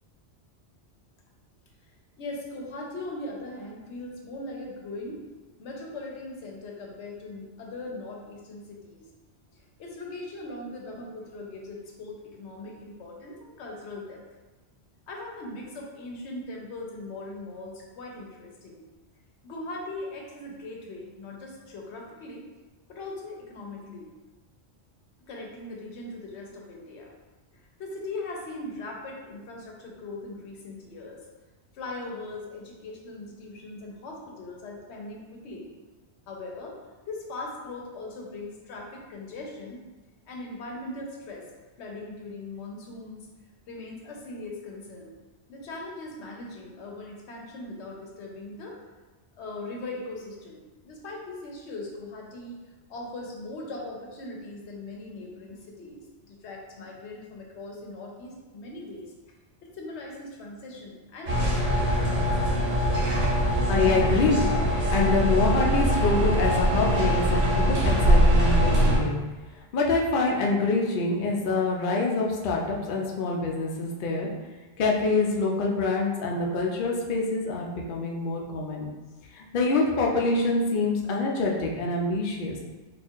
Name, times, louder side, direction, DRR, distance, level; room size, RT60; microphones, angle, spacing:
voice 1, 2.2-5.3 5.6-9.1 9.8-14.2 15.1-18.8 19.4-22.5 22.9-24.1 25.3-27.1 27.5-31.2 31.7-35.7 36.3-36.8 37.0-39.8 40.3-41.5 41.8-43.3 43.7-45.1 45.5-48.8 49.4-52.6 52.9-59.1 59.7-62.1, left 2 dB, 80° left, -1 dB, 0.9 m, -40 dB
sound 1, 61.3-69.0, equal, 55° right, 1.0 m, -22 dB
voice 2, 63.0-64.5 64.9-69.2 69.7-74.3 74.8-78.9 79.3-82.6, left 3 dB, 60° left, -1 dB, 0.6 m, -26 dB
4.4 x 2.4 x 2.4 m, 1.2 s
omnidirectional pair, 1.2 m